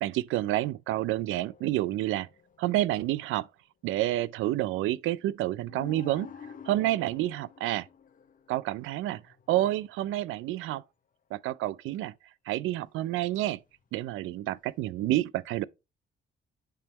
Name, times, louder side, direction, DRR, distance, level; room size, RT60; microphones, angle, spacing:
voice 1, 0.0-2.3 2.6-3.5 3.8-6.3 6.7-7.9 8.5-9.2 9.5-10.8 11.3-12.1 12.5-13.6 13.9-15.6, right 15 dB, 85° right, 0.4 m, -29 dB
sound 1, 1.3-2.9 5.3-5.4 5.6-10.1 13.2-13.8 14.5-14.8, left 7 dB, 45° left, 0.7 m, -50 dB
9.8 x 3.5 x 3.0 m
cardioid pair, 90°, 20 cm